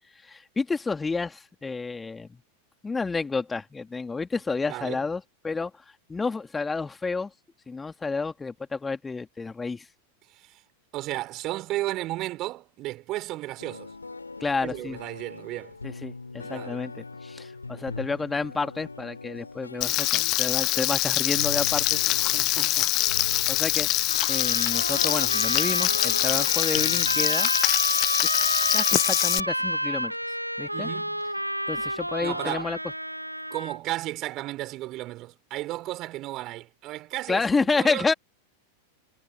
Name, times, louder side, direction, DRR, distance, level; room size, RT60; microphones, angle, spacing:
voice 1, 0.2-2.4 2.8-5.7 6.1-7.3 7.7-9.8 14.4-15.0 15.8-22.0 23.5-23.9 24.3-27.5 28.7-30.1 30.6-30.9 31.7-32.8 37.3-38.1, left 4 dB, 10° left, 2.8 m, -30 dB
voice 2, 4.7-5.0 10.3-10.6 10.9-13.9 14.6-15.7 16.3-16.8 22.1-22.9 30.7-31.2 32.2-32.7 33.5-38.0, right 17 dB, 35° right, 3.9 m, -34 dB
sound 1, 13.6-27.3, left 3 dB, 80° left, 5.1 m, -40 dB
Frying (food), 19.8-29.4, left 18 dB, 40° left, 0.7 m, -24 dB
Trumpet, 24.1-33.8, equal, 90° right, 4.7 m, -30 dB
figure-of-eight pair, 90°, 0 cm